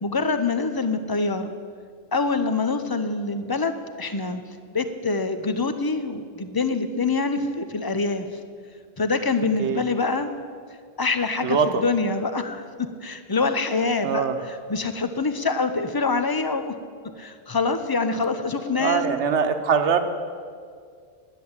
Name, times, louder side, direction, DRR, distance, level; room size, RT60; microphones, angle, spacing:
voice 1, 0.0-1.5 2.1-4.4 4.7-8.3 9.0-10.3 11.0-12.7 13.0-14.2 14.7-16.7 17.2-19.0, left 3 dB, 30° left, 9 dB, 0.4 m, -25 dB
voice 2, 11.4-11.8 14.0-14.4 18.7-20.0, right 6 dB, 75° right, 7 dB, 1.2 m, -22 dB
10.5 x 7.6 x 8.6 m, 2.1 s
omnidirectional pair, 1.2 m